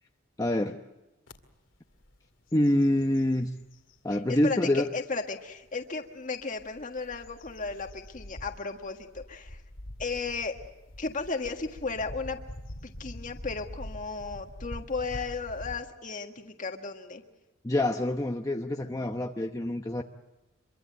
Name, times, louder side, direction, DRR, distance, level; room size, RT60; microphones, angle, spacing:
voice 1, 0.4-0.8 2.5-3.5 4.0-4.9 17.6-20.0, left 1 dB, 20° left, 4 dB, 0.9 m, -26 dB
sound 1, 1.3-1.4 1.9-2.2 2.5-4.0 4.6-4.7 6.4-15.8, left 1 dB, 80° left, 2.1 m, -44 dB
voice 2, 4.1-9.6 10.0-10.5 11.0-12.4 12.8-17.2, left 4 dB, 45° left, 4 dB, 1.6 m, -35 dB
25.5 x 23.5 x 7.7 m, 1.0 s
head